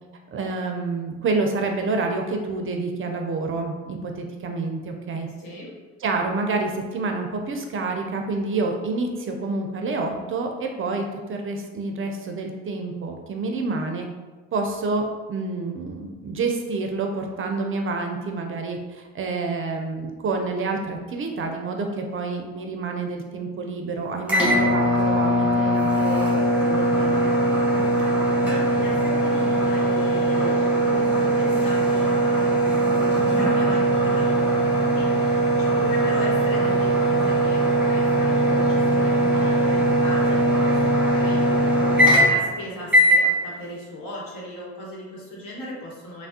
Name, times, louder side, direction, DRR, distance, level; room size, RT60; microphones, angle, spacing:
voice 1, 0.3-5.3 6.0-14.1 14.5-27.3, right 3 dB, 40° right, 3 dB, 0.4 m, -28 dB
voice 2, 5.4-5.7 28.0-41.4 42.2-46.3, left 1 dB, 65° left, -4 dB, 1.1 m, -37 dB
sound 1, 24.3-42.5 42.9-43.2, right 1 dB, 5° right, 1.0 m, -20 dB
3.3 x 2.0 x 2.7 m, 1.3 s
hypercardioid pair, 60°, 35 cm